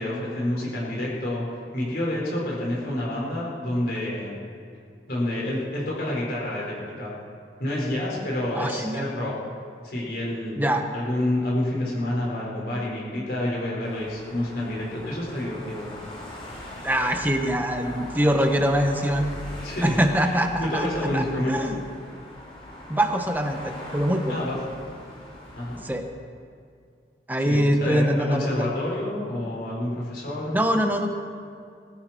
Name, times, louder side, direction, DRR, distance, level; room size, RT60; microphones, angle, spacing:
voice 1, 0.0-1.4 1.7-4.4 5.1-7.1 7.6-9.3 9.8-10.6 10.9-15.9 19.6-21.7 24.3-24.6 25.6-25.8 27.4-30.5, left 1 dB, 55° left, -5 dB, 5.5 m, -28 dB
voice 2, 8.5-9.1 10.5-10.8 16.8-19.3 19.8-20.9 21.1-21.8 22.9-24.4 25.8-26.0 27.3-28.6 30.5-31.1, equal, 10° right, 4 dB, 1.1 m, -23 dB
sound 1, 13.8-25.9, left 1 dB, 30° left, 5.1 m, -41 dB
21.0 x 13.5 x 4.6 m, 2.2 s
head